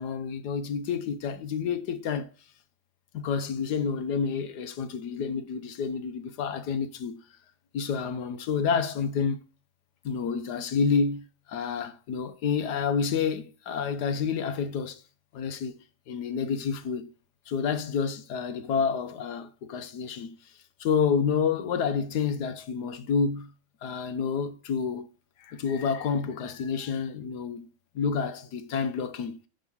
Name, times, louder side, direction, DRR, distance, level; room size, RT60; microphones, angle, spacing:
voice 1, 0.0-2.3 3.1-7.2 7.7-9.4 10.0-15.0 15.3-15.8 16.1-17.1 17.5-20.4 20.8-23.5 23.8-25.1 25.4-27.7 27.9-29.4, left 6 dB, 60° left, 1.2 m, -29 dB
10.0 x 3.7 x 7.0 m
omnidirectional pair, 2.3 m